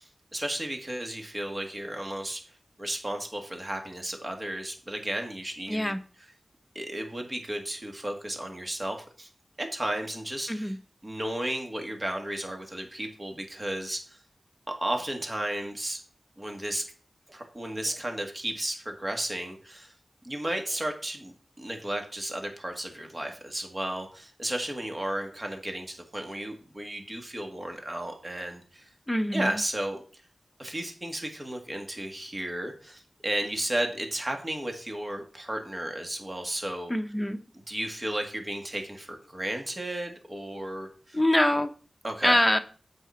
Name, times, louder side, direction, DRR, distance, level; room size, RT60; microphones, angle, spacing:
voice 1, 0.0-2.4 2.8-6.3 6.7-9.3 9.6-10.7 11.0-14.2 14.7-16.0 16.4-16.8 17.3-19.9 20.2-28.9 29.3-30.2 30.6-36.9 37.7-41.2 41.5-41.6 42.0-42.4, right 1 dB, 30° right, 3 dB, 2.1 m, -34 dB
voice 2, 5.7-6.0 10.5-10.8 29.1-29.6 36.9-37.4 41.1-41.7 42.2-42.6, left 1 dB, 10° left, 7 dB, 1.0 m, -24 dB
8.0 x 5.1 x 5.8 m, 0.40 s
wide cardioid pair, 60°, 0 cm